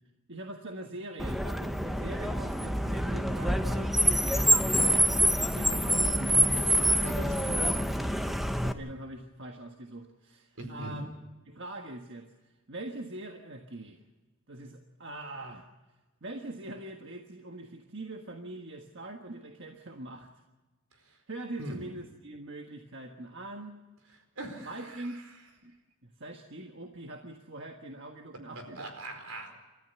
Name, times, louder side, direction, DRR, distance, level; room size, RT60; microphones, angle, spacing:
voice 1, 0.3-5.1 5.5-6.7 8.6-11.1 11.5-14.0 14.5-15.7 16.2-20.3 21.3-23.7 24.6-25.2 25.6-25.7 26.0-28.9, right 2 dB, 55° right, 3 dB, 1.5 m, -43 dB
Car, 1.2-8.7, equal, ahead, 0.9 m, -26 dB
voice 2, 7.0-8.1 10.6-11.0 21.6-21.8 24.4-25.2 28.6-29.5, right 1 dB, 75° right, 5 dB, 4.6 m, -41 dB
29.5 x 13.5 x 7.0 m, 1.2 s
head